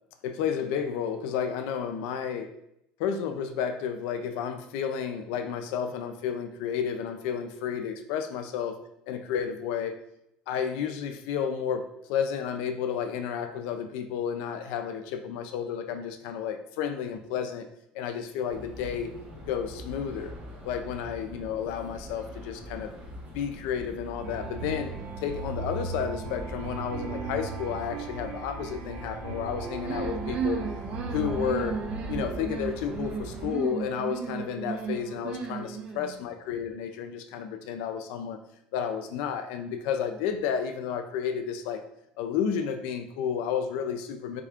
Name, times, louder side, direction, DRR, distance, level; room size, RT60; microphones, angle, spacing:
voice 1, 0.2-2.5 3.0-8.8 9.1-10.0 10.5-17.7 17.9-19.1 19.5-20.3 20.6-22.9 23.3-30.6 31.1-31.8 32.1-38.4 38.7-41.8 42.2-44.4, left 7 dB, 80° left, 7 dB, 0.3 m, -31 dB
sound 1, 18.5-33.5, left 1 dB, 70° right, 1.3 m, -43 dB
sound 2, 24.2-32.4, right 4 dB, 85° right, 0.8 m, -37 dB
sound 3, 29.8-36.2, right 6 dB, 45° right, 0.5 m, -34 dB
3.5 x 2.3 x 3.5 m, 0.78 s
cardioid pair, 115°, 3 cm